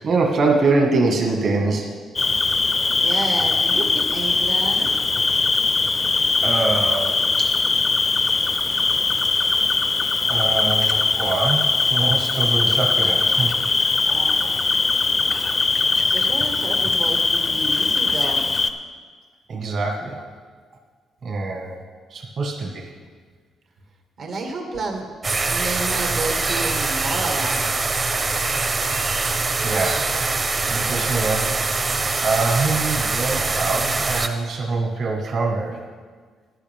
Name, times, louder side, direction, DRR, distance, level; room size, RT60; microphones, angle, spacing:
voice 1, 0.0-1.9 6.4-7.5 10.3-13.5 19.5-20.2 21.2-21.8 22.1-22.9 29.6-30.4 30.7-31.6 32.2-35.8, right 3 dB, 55° right, 0 dB, 1.8 m, -24 dB
Cricket, 2.1-18.7, left 3 dB, 35° left, 0.7 m, -20 dB
voice 2, 3.0-4.9 14.0-14.6 16.0-18.4 24.2-25.1 25.5-27.6, right 3 dB, 70° right, 1 dB, 1.8 m, -30 dB
sound 1, 25.2-34.3, right 3 dB, 35° right, 1.0 m, -23 dB
14.5 x 10.5 x 3.6 m, 1.5 s
cardioid pair, 90°, 0 cm